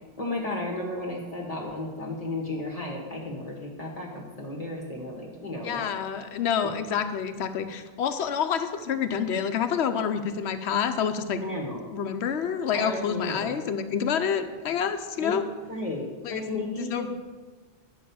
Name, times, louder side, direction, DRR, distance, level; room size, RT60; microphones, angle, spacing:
voice 1, 0.2-6.1 6.6-6.7 11.4-11.8 12.7-13.6 15.2-15.4 15.7-17.1, left 2 dB, 35° left, -3 dB, 1.5 m, -33 dB
voice 2, 5.6-11.4 11.9-15.4 16.2-16.4 16.8-17.1, left 7 dB, 90° left, 8 dB, 1.0 m, -28 dB
11.0 x 5.5 x 6.9 m, 1.4 s
omnidirectional pair, 1.1 m